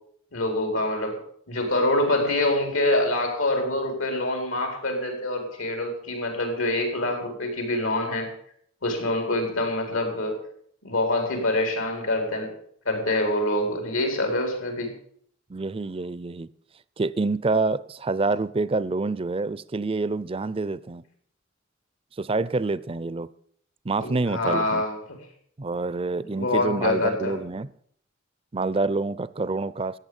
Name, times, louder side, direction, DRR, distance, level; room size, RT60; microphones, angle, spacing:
voice 1, 0.3-1.2 1.5-8.3 8.8-10.4 10.8-12.5 12.8-14.9 24.0-25.0 26.3-27.4, left 1 dB, 90° left, 4.6 m, -25 dB
voice 2, 15.5-16.5 17.0-21.0 22.2-23.3 23.8-24.8 25.6-27.7 28.5-30.0, right 3 dB, 30° right, 0.5 m, -27 dB
14.0 x 9.4 x 7.2 m
head